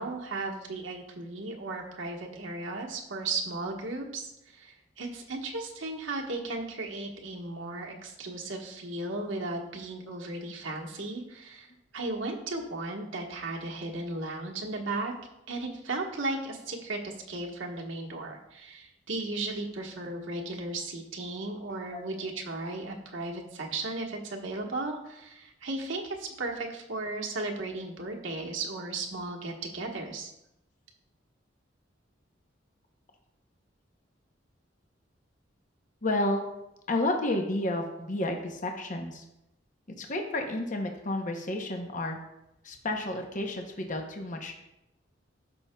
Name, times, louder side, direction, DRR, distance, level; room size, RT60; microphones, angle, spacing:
voice 1, 0.0-11.7 11.9-15.1 15.5-30.3, right 2 dB, 90° right, 0 dB, 1.3 m, -35 dB
voice 2, 21.7-22.3 36.0-36.4 36.9-39.2 40.0-42.2 42.6-44.5, left 1 dB, 40° left, 3 dB, 0.8 m, -31 dB
13.0 x 5.5 x 2.3 m, 0.87 s
head